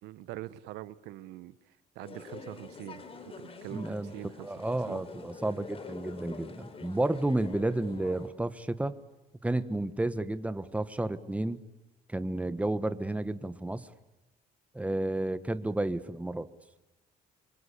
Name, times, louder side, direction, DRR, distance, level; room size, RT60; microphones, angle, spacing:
voice 1, 0.0-5.0, right 15 dB, 90° right, 17 dB, 1.1 m, -44 dB
sound 1, 2.0-8.3, left 4 dB, 35° left, 4.1 m, -46 dB
voice 2, 3.7-4.1 4.4-9.0 9.4-11.6 12.1-13.9 14.7-16.5, right 2 dB, 10° right, 12 dB, 1.4 m, -31 dB
26.5 x 24.5 x 8.5 m, 1.0 s
cardioid pair, 110°, 17 cm